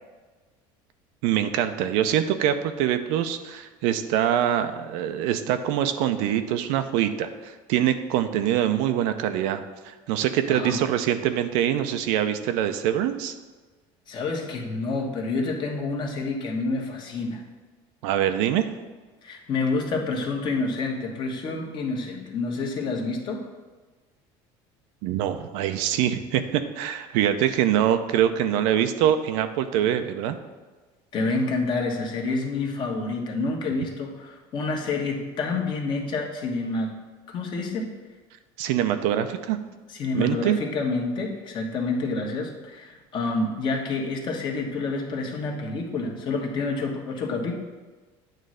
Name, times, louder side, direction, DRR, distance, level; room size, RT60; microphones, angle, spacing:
voice 1, 1.2-13.3 18.0-18.7 25.0-30.4 38.6-39.6 40.1-40.6, right 10 dB, 75° right, 9 dB, 0.6 m, -24 dB
voice 2, 10.5-10.8 14.1-17.4 19.2-23.5 31.1-36.9 37.3-37.9 39.9-47.6, left 3 dB, 45° left, 1 dB, 1.3 m, -28 dB
9.1 x 3.2 x 6.4 m, 1.3 s
cardioid pair, 130°, 12 cm